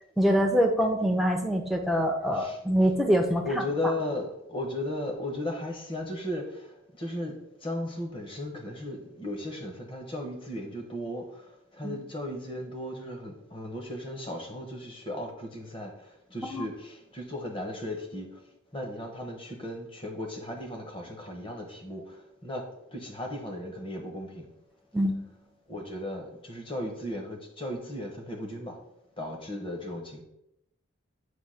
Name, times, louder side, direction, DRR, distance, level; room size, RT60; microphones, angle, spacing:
voice 1, 0.2-3.6 11.8-12.0 16.5-16.7 24.9-25.2, equal, ahead, 2 dB, 0.6 m, -25 dB
voice 2, 3.4-6.7 7.0-7.3 7.6-11.4 11.7-15.9 16.3-18.3 18.7-22.2 22.4-22.6 22.9-24.5 25.7-28.8 29.2-30.2, left 1 dB, 25° left, 2 dB, 1.0 m, -36 dB
8.0 x 2.8 x 5.6 m, 0.80 s
head